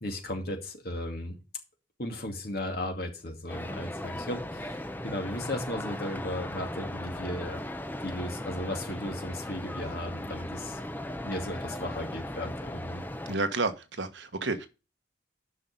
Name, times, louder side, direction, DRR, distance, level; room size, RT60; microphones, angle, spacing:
voice 1, 0.0-1.4 2.0-7.6 8.0-10.8 11.2-13.0, left 1 dB, 55° left, 2.5 m, -36 dB
sound 1, 3.5-13.4, left 1 dB, 10° left, 0.6 m, -37 dB
voice 2, 13.3-14.7, right 3 dB, 70° right, 1.2 m, -30 dB
9.9 x 5.8 x 5.3 m
head